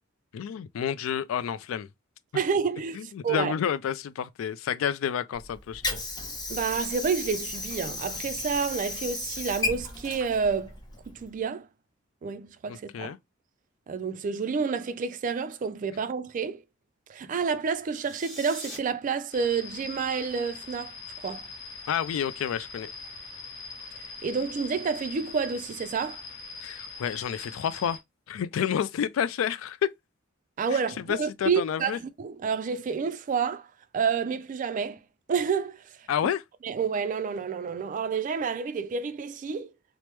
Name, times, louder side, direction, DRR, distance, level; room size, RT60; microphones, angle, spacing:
voice 1, 0.3-1.9 3.0-6.0 12.7-13.2 21.9-22.9 26.6-28.0 28.3-29.9 31.1-32.0 36.1-36.4, left 8 dB, 75° left, 0.3 m, -29 dB
voice 2, 2.3-3.5 6.5-10.8 11.1-11.7 12.2-13.1 13.9-16.6 17.1-20.9 21.2-21.5 24.2-26.2 30.6-33.7 33.9-35.0 35.3-36.1 36.6-39.7, right 5 dB, 40° right, 0.3 m, -29 dB
Water / Sink (filling or washing), 5.3-11.3, left 2 dB, 20° left, 0.9 m, -35 dB
sound 1, 17.9-18.8, equal, ahead, 1.1 m, -41 dB
sound 2, 19.3-28.0, left 4 dB, 60° left, 0.8 m, -42 dB
3.0 x 2.0 x 3.1 m
head